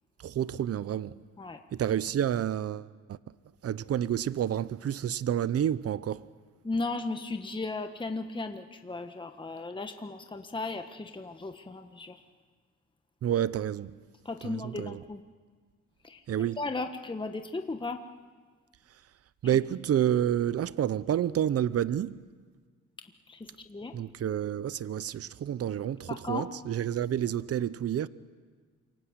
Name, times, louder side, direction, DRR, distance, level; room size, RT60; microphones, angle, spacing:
voice 1, 0.2-1.2 1.7-3.2 3.6-6.3 13.2-14.0 14.4-15.0 16.3-16.6 19.4-22.2 23.9-28.1, right 10 dB, 50° right, 0.8 m, -29 dB
voice 2, 6.6-12.2 14.2-15.2 16.0-16.2 16.6-18.0 23.3-23.9 26.1-26.5, left 3 dB, 15° left, 1.4 m, -36 dB
27.5 x 24.5 x 8.1 m
cardioid pair, 90°, 30 cm